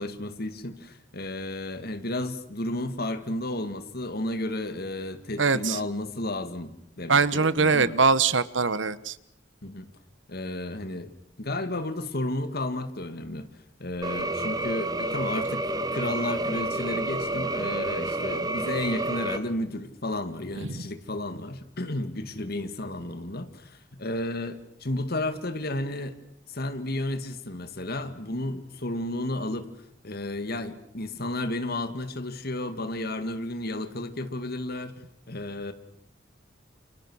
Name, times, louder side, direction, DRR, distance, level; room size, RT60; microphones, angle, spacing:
voice 1, 0.0-8.0 9.6-9.9 10.3-11.1 11.4-13.5 13.8-26.2 26.5-29.7 30.0-35.0 35.3-35.7, left 1 dB, 55° left, 10 dB, 2.3 m, -32 dB
voice 2, 5.4-5.8 7.1-9.1 20.6-20.8, right 4 dB, 75° right, 17 dB, 1.2 m, -22 dB
sound 1, 14.0-19.4, right 2 dB, 20° right, 1.8 m, -29 dB
29.0 x 27.0 x 6.4 m, 0.72 s
head